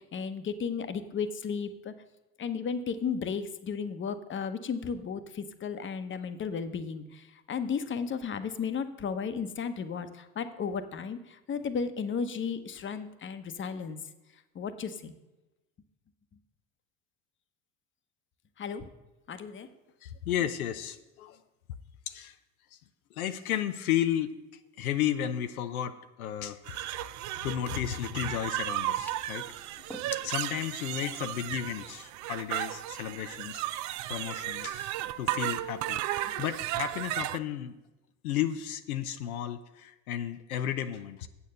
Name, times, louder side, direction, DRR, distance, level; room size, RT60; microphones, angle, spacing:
voice 1, 0.0-1.9 2.4-14.0 14.5-15.1 18.6-18.9 19.3-19.7 36.2-36.3, left 6 dB, 30° left, 10 dB, 0.9 m, -34 dB
voice 2, 20.0-21.4 22.1-22.4 22.7-22.8 23.1-24.3 24.8-27.0 27.4-29.6 30.0-37.8 38.2-41.3, left 11 dB, 80° left, 9 dB, 0.7 m, -33 dB
sound 1, 26.7-37.4, right 15 dB, 45° right, 0.5 m, -34 dB
sound 2, 29.1-29.3 29.9-30.3, left 1 dB, 5° left, 0.9 m, -46 dB
8.3 x 7.0 x 6.6 m, 1.0 s
hypercardioid pair, 75°, 42 cm